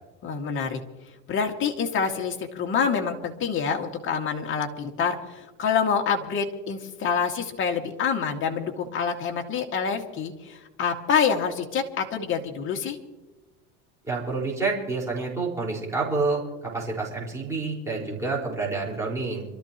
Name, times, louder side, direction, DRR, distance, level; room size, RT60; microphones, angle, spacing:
voice 1, 0.2-0.8 1.3-13.0, left 6 dB, 35° left, 2 dB, 2.2 m, -27 dB
voice 2, 14.0-19.4, right 3 dB, 10° right, -5 dB, 4.8 m, -28 dB
27.5 x 13.5 x 3.0 m, 1.1 s
supercardioid pair, 130°, 34 cm